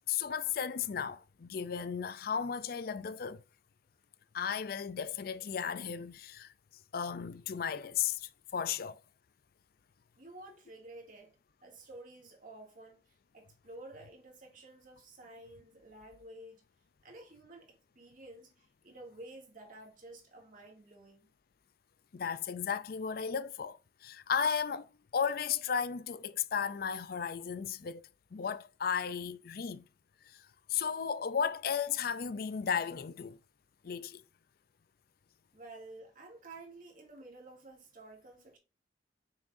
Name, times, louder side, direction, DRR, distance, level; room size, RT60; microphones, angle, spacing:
voice 1, 0.1-3.4 4.3-6.5 6.9-9.0 22.1-29.8 30.3-33.4 33.8-34.2, left 7 dB, 55° left, 0.4 m, -35 dB
voice 2, 10.2-11.4 11.6-16.6 17.0-21.3 35.5-38.6, right 2 dB, 50° right, 2.4 m, -52 dB
7.1 x 6.2 x 2.6 m
head